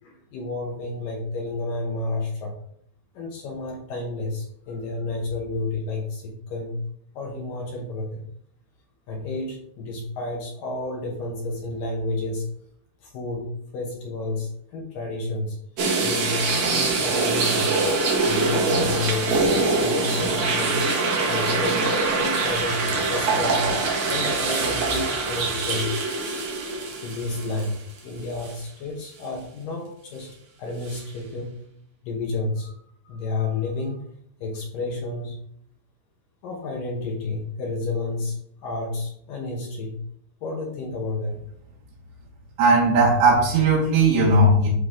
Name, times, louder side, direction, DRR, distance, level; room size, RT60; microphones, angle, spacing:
voice 1, 0.0-2.5 3.1-6.8 7.2-8.2 9.1-12.5 13.0-15.6 16.0-17.8 18.3-20.8 21.3-23.7 24.1-25.9 27.0-27.8 28.0-30.3 30.6-31.6 32.0-34.0 34.4-35.4 36.4-40.0 40.4-41.4, left 2 dB, 70° left, -1 dB, 2.2 m, -31 dB
sound 1, 15.8-28.0 28.4-28.5 30.9-31.0, right 3 dB, 60° right, 1.8 m, -24 dB
voice 2, 42.6-44.7, right 2 dB, 75° right, -5 dB, 3.5 m, -17 dB
11.5 x 3.9 x 3.7 m, 0.67 s
omnidirectional pair, 5.2 m